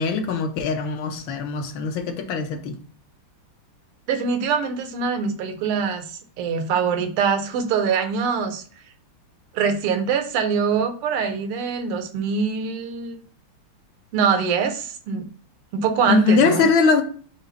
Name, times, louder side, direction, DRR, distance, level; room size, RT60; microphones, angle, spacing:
voice 1, 0.0-2.8 16.1-17.0, left 4 dB, 70° left, 1.4 m, -21 dB
voice 2, 4.1-8.6 9.5-13.2 14.1-15.3 15.7-16.7, right 6 dB, 85° right, 1.7 m, -23 dB
5.4 x 2.4 x 3.9 m
omnidirectional pair, 2.4 m